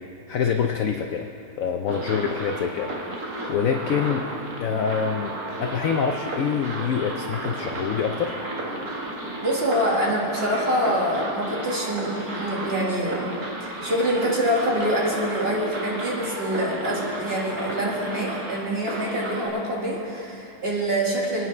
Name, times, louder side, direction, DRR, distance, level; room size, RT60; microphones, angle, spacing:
voice 1, 0.3-1.3 1.6-2.9 3.5-4.2 4.6-8.3, left 7 dB, 65° left, 4 dB, 0.8 m, -25 dB
sound 1, 1.9-19.5, right 2 dB, 55° right, 2.0 m, -33 dB
voice 2, 9.4-13.2 13.6-21.5, equal, 35° right, -3 dB, 2.0 m, -25 dB
25.5 x 9.6 x 3.2 m, 2.7 s
omnidirectional pair, 2.0 m